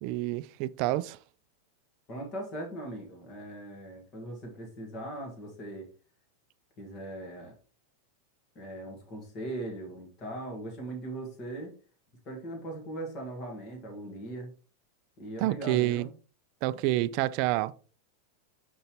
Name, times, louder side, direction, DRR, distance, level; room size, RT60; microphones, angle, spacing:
voice 1, 0.0-1.2 15.4-16.1 16.6-17.7, right 16 dB, 40° right, 0.3 m, -28 dB
voice 2, 2.1-5.9 6.8-7.5 8.5-11.7 12.2-14.5 15.2-16.1, right 1 dB, 25° left, 1.7 m, -39 dB
6.7 x 5.3 x 3.0 m
supercardioid pair, 170°, 0 cm